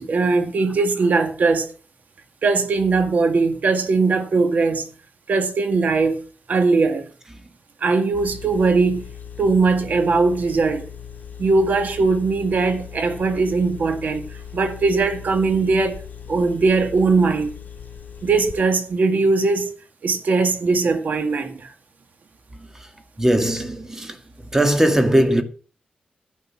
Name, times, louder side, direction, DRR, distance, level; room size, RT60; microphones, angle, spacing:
voice 1, 0.0-1.7 2.4-4.9 5.3-6.2 6.5-7.0 7.8-9.1 9.4-10.9 11.4-14.2 14.5-16.0 16.3-17.5 18.2-19.7 20.0-21.7, right 3 dB, 65° right, 2.1 m, -20 dB
Engine, 8.1-18.6, left 8 dB, 60° left, 2.4 m, -39 dB
voice 2, 23.2-24.2 24.5-25.4, right 1 dB, 15° right, 2.0 m, -19 dB
12.0 x 8.4 x 6.0 m
cardioid pair, 70°, 3 cm